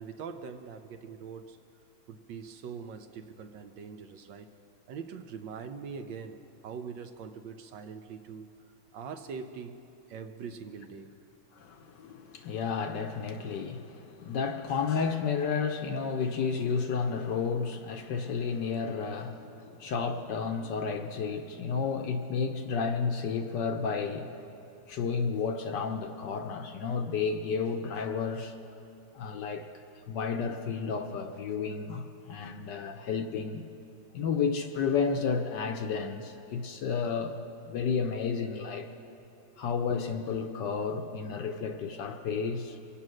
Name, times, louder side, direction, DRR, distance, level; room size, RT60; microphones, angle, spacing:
voice 1, 0.0-1.6 2.1-4.5 4.9-8.5 8.9-9.8 10.1-11.1 39.5-39.7, right 6 dB, 70° right, 7 dB, 1.2 m, -42 dB
voice 2, 11.5-24.5 24.9-28.5 29.1-29.6 30.1-33.6 34.1-37.4 37.7-38.9 39.6-42.8, left 5 dB, 65° left, 6 dB, 1.2 m, -32 dB
24.5 x 8.5 x 6.3 m, 2.8 s
omnidirectional pair, 2.3 m